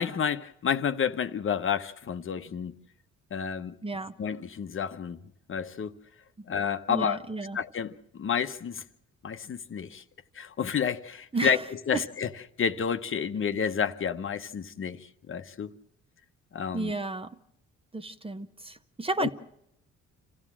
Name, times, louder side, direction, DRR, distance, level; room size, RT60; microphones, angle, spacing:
voice 1, 0.0-2.7 3.3-3.7 4.2-5.2 5.5-5.9 6.5-7.2 7.5-8.8 9.2-10.0 10.3-11.6 11.9-12.3 12.6-15.7 16.5-16.9 19.2-19.3, left 7 dB, 45° left, 0.9 m, -30 dB
voice 2, 3.8-4.2 6.4-6.5 6.9-7.6 11.3-11.6 11.9-12.0 16.7-17.4 17.9-19.3, right 3 dB, 20° right, 0.9 m, -32 dB
27.0 x 15.0 x 7.5 m
cardioid pair, 90°, 30 cm